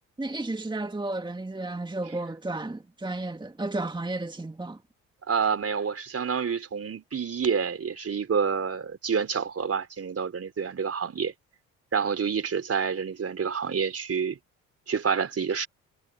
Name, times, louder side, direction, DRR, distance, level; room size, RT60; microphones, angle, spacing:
voice 1, 0.2-4.8, right 2 dB, 10° right, 2.1 m, -33 dB
voice 2, 5.3-11.3 11.9-14.4 14.9-15.7, right 6 dB, 40° right, 4.1 m, -28 dB
hypercardioid pair, 55°, 39 cm